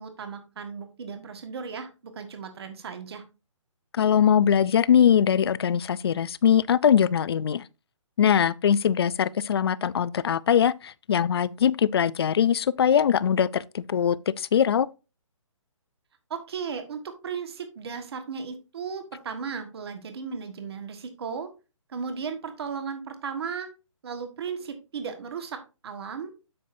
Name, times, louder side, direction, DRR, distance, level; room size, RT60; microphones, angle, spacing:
voice 1, 0.0-3.2 16.3-21.5 21.9-23.7 24.0-25.6 25.8-26.3, right 6 dB, 50° right, 1.5 m, -35 dB
voice 2, 3.9-7.7 8.2-14.9, left 8 dB, 50° left, 0.4 m, -22 dB
8.6 x 7.1 x 2.6 m
hypercardioid pair, 160°, 17 cm